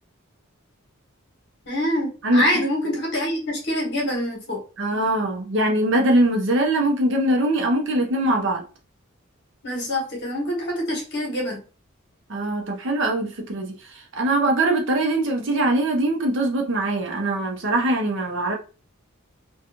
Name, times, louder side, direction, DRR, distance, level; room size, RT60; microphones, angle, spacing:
voice 1, 1.6-4.6 9.6-11.6, equal, 55° left, 1.2 m, -25 dB
voice 2, 4.8-8.6 12.3-18.5, right 1 dB, 65° right, 0.7 m, -22 dB
2.6 x 2.4 x 2.8 m
head